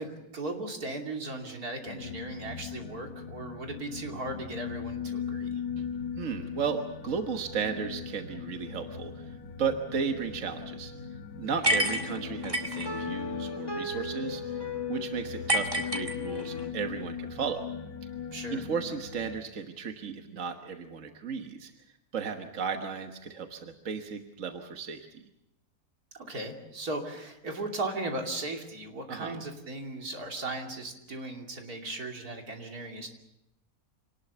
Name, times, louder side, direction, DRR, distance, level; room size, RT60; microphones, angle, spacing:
voice 1, 0.0-5.6 11.5-11.7 18.3-18.6 26.1-33.1, right 2 dB, 80° right, 2 dB, 3.3 m, -37 dB
sound 1, 1.9-19.4, left 6 dB, 85° left, 1.8 m, -39 dB
voice 2, 6.2-10.9 11.4-14.6 14.9-17.6 18.5-21.7 22.1-25.3 29.1-29.4, right 6 dB, 60° right, 5 dB, 1.6 m, -34 dB
sound 2, 11.6-16.7, left 2 dB, 15° left, 1.9 m, -38 dB
sound 3, 11.6-12.9 15.5-16.6, right 1 dB, 20° right, 2.0 m, -28 dB
26.5 x 19.0 x 6.8 m, 0.84 s
omnidirectional pair, 1.6 m